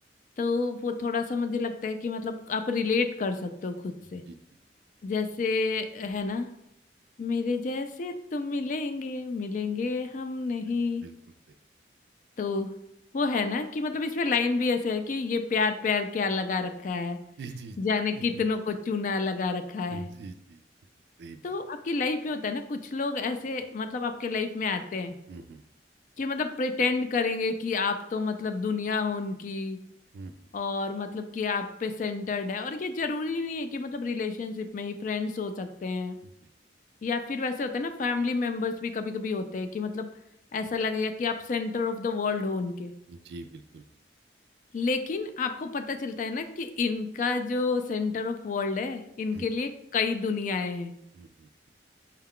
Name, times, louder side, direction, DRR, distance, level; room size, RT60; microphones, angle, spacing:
voice 1, 0.4-4.2 5.0-6.5 7.2-11.0 12.4-12.7 13.1-17.2 17.8-20.1 21.4-25.1 26.2-29.8 30.5-36.2 37.0-40.1 40.5-42.9 44.7-50.9, left 4 dB, 45° left, 7 dB, 0.3 m, -29 dB
voice 2, 17.4-17.8 18.1-18.4 19.9-20.6 21.2-21.6 25.3-25.6 30.1-30.3 36.2-36.3 43.1-43.8 49.3-49.5 51.1-51.5, right 3 dB, 65° right, 9 dB, 0.3 m, -43 dB
4.5 x 2.2 x 3.6 m, 0.77 s
head